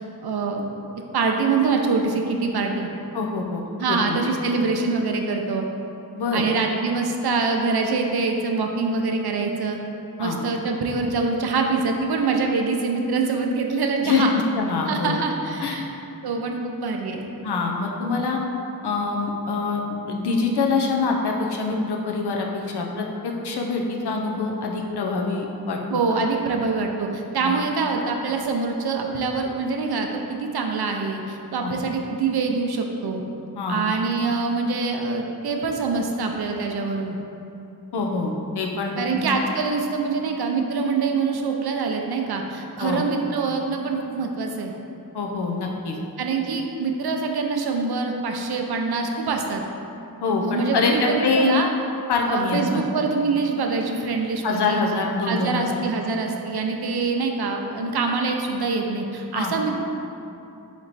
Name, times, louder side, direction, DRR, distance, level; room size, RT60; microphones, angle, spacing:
voice 1, 0.2-0.6 1.1-2.9 3.8-5.7 6.3-9.8 10.2-14.3 14.9-15.9 16.2-17.3 25.9-33.2 33.7-37.2 39.0-44.7 46.2-49.6 50.4-51.7 52.3-54.8 55.2-59.8, right 4 dB, 70° right, 3 dB, 0.6 m, -24 dB
voice 2, 3.1-3.6 3.9-4.2 6.2-6.4 10.2-10.4 14.0-14.2 14.6-15.2 15.6-15.8 17.4-18.4 18.8-19.8 20.1-26.2 27.4-27.5 31.6-31.7 33.6-33.8 37.9-39.2 42.8-43.0 45.1-46.0 50.2-51.5 52.1-52.8 54.4-55.6 59.3-59.5, left 4 dB, 80° left, 0 dB, 0.6 m, -25 dB
4.3 x 3.0 x 4.0 m, 2.8 s
cardioid pair, 45°, 39 cm